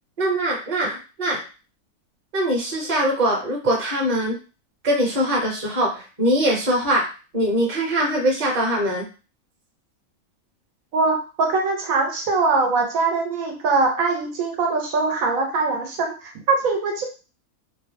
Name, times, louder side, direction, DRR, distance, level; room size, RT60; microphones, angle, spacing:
voice 1, 0.2-1.4 2.3-4.4 4.8-7.1 7.3-9.1, right 1 dB, 30° right, -1 dB, 0.8 m, -22 dB
voice 2, 10.9-17.0, right 3 dB, 75° right, 2 dB, 1.0 m, -22 dB
2.7 x 2.1 x 3.3 m, 0.33 s
omnidirectional pair, 1.5 m